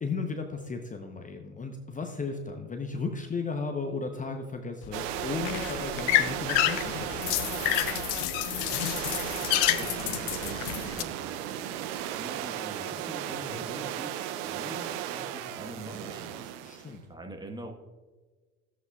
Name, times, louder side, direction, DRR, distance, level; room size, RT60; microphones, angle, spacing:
voice 1, 0.0-7.3 13.5-13.6 16.6-17.1, left 4 dB, 20° left, 4 dB, 0.8 m, -35 dB
sound 1, 4.8-11.0, left 15 dB, 65° left, 0.6 m, -29 dB
sound 2, 4.9-16.9, right 11 dB, 70° right, 0.7 m, -35 dB
voice 2, 7.8-16.5 17.1-17.7, right 1 dB, 10° right, 3 dB, 1.4 m, -45 dB
13.0 x 8.0 x 2.4 m, 1.4 s
hypercardioid pair, 65°, 35 cm